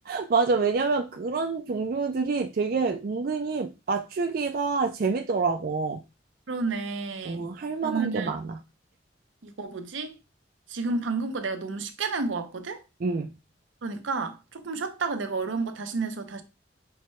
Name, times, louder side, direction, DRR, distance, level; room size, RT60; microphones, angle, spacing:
voice 1, 0.1-6.0 7.2-8.6 13.0-13.3, right 4 dB, 50° right, 0.4 m, -27 dB
voice 2, 6.5-7.4 7.8-8.4 9.4-10.2 10.7-12.8 13.8-16.4, right 4 dB, 85° right, 0.6 m, -31 dB
5.7 x 2.2 x 3.1 m
head